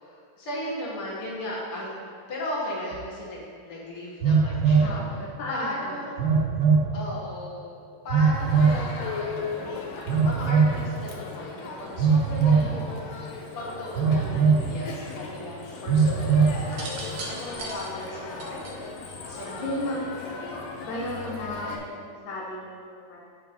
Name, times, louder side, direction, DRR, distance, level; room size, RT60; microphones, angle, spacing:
voice 1, 0.0-1.9 2.3-5.2 5.5-6.2 6.9-13.0 13.5-18.7 19.3-20.0, left 1 dB, 50° left, -5 dB, 2.2 m, -36 dB
Telephone, 2.9-3.0 4.2-4.9 6.2-6.9 8.1-8.8 10.1-10.8 12.0-12.7 13.9-14.7 15.9-16.6, right 5 dB, 90° right, 1.0 m, -20 dB
voice 2, 4.8-6.3 12.6-13.0 19.6-23.2, left 1 dB, 65° left, -4 dB, 1.1 m, -35 dB
Crowd, 8.3-21.8, left 4 dB, 85° left, 2.6 m, -37 dB
sound 1, 16.6-19.8 20.9-21.3, right 2 dB, 60° right, 1.7 m, -39 dB
8.2 x 6.9 x 4.3 m, 2.2 s
omnidirectional pair, 3.7 m